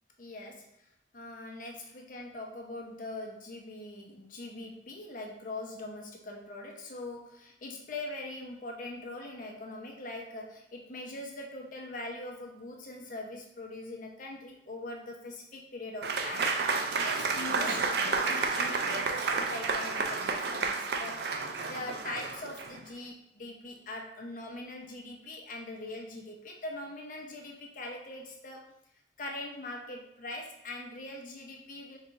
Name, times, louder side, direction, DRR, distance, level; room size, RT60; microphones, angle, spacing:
voice 1, 0.2-28.7 29.2-32.0, left 2 dB, 50° left, 1 dB, 0.7 m, -42 dB
Applause / Crowd, 16.0-22.8, right 4 dB, 65° right, 0.4 m, -31 dB
3.6 x 3.2 x 3.9 m, 0.78 s
head